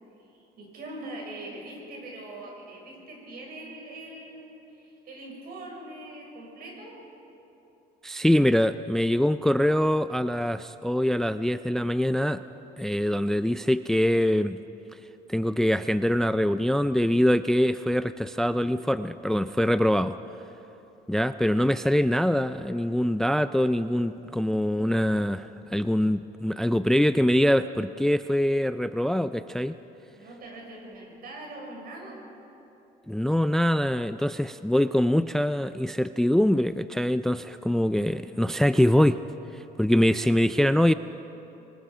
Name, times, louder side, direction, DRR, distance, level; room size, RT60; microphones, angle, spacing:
voice 1, 0.3-7.0 30.1-32.2, right 1 dB, 60° right, -1 dB, 6.4 m, -42 dB
voice 2, 8.0-12.4 12.8-14.6 15.3-20.2 21.1-29.7 33.1-39.2 39.5-40.9, left 1 dB, 5° left, 12 dB, 0.3 m, -24 dB
25.5 x 20.0 x 5.1 m, 3.0 s
cardioid pair, 110°, 17 cm